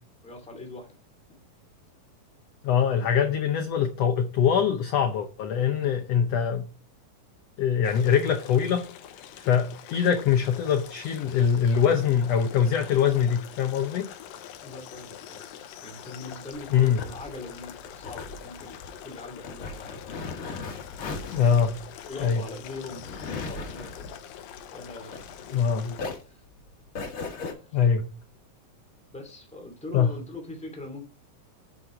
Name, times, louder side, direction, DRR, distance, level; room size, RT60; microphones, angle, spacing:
voice 1, 0.2-0.9 14.6-15.4 15.8-18.8 19.0-20.1 22.0-24.2 24.7-26.0 26.2-26.4 27.4-27.8 29.1-31.0, left 2 dB, ahead, 1.9 m, -42 dB
voice 2, 2.6-6.7 7.6-8.9 9.4-14.1 16.7-17.0 21.3-21.8 22.2-22.4 25.5-25.9 27.7-28.1 29.9-30.1, left 7 dB, 70° left, 1.5 m, -23 dB
sound 1, 7.8-26.0, left 10 dB, 90° left, 2.6 m, -44 dB
sound 2, 16.6-25.6 25.9-27.5, left 4 dB, 45° left, 2.2 m, -38 dB
8.3 x 8.0 x 3.7 m
omnidirectional pair, 3.9 m